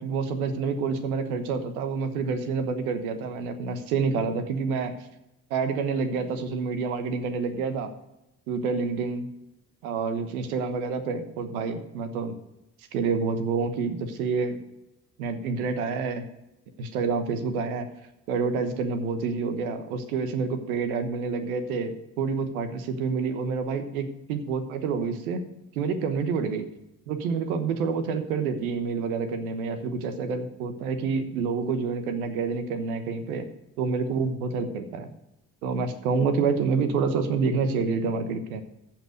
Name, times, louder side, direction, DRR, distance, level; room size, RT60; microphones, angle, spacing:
voice 1, 0.0-4.9 5.5-7.9 8.5-9.3 9.8-12.3 12.9-14.6 15.2-16.3 16.8-17.9 18.3-25.4 25.7-26.7 27.1-33.4 33.8-35.1 35.6-38.6, right 5 dB, 75° right, 9 dB, 1.2 m, -28 dB
14.5 x 5.8 x 5.1 m, 0.90 s
figure-of-eight pair, 50°, 44 cm